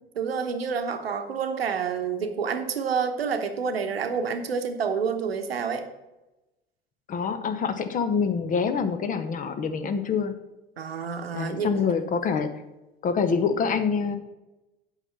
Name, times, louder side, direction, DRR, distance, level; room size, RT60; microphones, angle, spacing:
voice 1, 0.2-5.9 10.8-11.7, right 6 dB, 75° right, 7 dB, 1.0 m, -28 dB
voice 2, 7.1-10.3 11.3-12.5 13.0-14.2, left 5 dB, 25° left, 9 dB, 0.9 m, -26 dB
8.2 x 5.7 x 5.5 m, 1.0 s
figure-of-eight pair, 75°, 30 cm